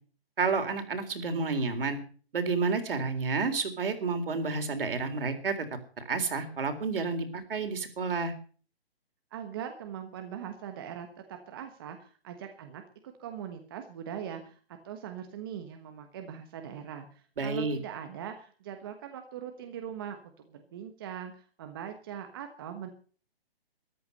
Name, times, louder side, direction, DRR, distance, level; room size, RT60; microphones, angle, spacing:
voice 1, 0.4-2.0 2.3-8.3 17.4-17.8, right 4 dB, 60° right, 8 dB, 3.9 m, -30 dB
voice 2, 9.3-14.6 14.8-20.2 20.5-22.9, right 9 dB, 20° right, 5 dB, 1.3 m, -41 dB
14.0 x 11.5 x 6.7 m, 0.41 s
hypercardioid pair, 170°, 31 cm